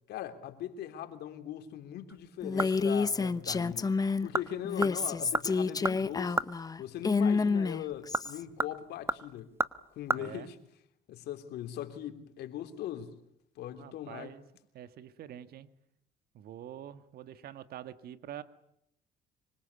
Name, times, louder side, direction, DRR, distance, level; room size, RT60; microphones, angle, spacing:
voice 1, 0.1-3.9 4.2-6.4 6.8-9.5 9.9-10.6 11.1-13.1 13.5-14.3, left 11 dB, 75° left, 3.4 m, -40 dB
sound 1, 2.1-3.0 3.3-3.4 4.1-4.5 4.8-6.6 7.9-10.2 10.5-10.6, right 2 dB, 15° right, 1.2 m, -34 dB
Female speech woman speaking, 2.4-4.3 4.6-8.4, left 4 dB, 20° left, 1.1 m, -29 dB
voice 2, 10.1-10.5 13.8-14.4 14.7-15.7 16.3-18.4, right 11 dB, 65° right, 1.8 m, -46 dB
26.0 x 24.5 x 8.4 m
cardioid pair, 110°, 17 cm